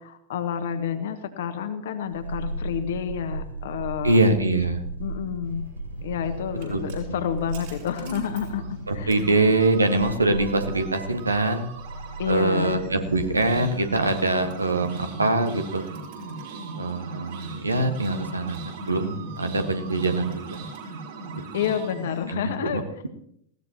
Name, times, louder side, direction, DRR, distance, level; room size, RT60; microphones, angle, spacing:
voice 1, 0.0-4.2 5.0-5.6 6.0-9.3 12.2-12.8 21.5-23.0, left 8 dB, 60° left, 8 dB, 1.5 m, -29 dB
sound 1, 2.1-14.5 14.8-14.9, right 2 dB, 90° left, 0.8 m, -37 dB
voice 2, 4.0-4.8 6.7-6.8 7.1-7.2 8.9-11.7 12.3-15.9 16.8-20.4 22.3-22.8, right 2 dB, 80° right, 7 dB, 1.5 m, -23 dB
sound 2, 6.0-22.2, right 3 dB, 55° right, 6.1 m, -39 dB
20.0 x 16.5 x 2.9 m, 0.70 s
figure-of-eight pair, 90°, 0 cm